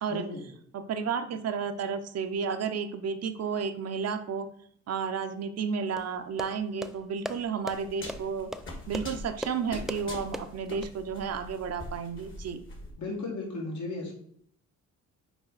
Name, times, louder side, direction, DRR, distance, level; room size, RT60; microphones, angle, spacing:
voice 1, 0.1-0.4 13.0-14.1, left 2 dB, 70° left, -2 dB, 2.4 m, -35 dB
voice 2, 0.7-4.5 4.9-8.5 8.9-12.6, right 6 dB, 55° right, 8 dB, 0.7 m, -32 dB
sound 1, 6.0-10.9, equal, ahead, 0.4 m, -40 dB
sound 2, 7.7-12.9, left 1 dB, 40° left, 1.7 m, -43 dB
6.0 x 4.3 x 4.0 m, 0.65 s
cardioid pair, 90°, 30 cm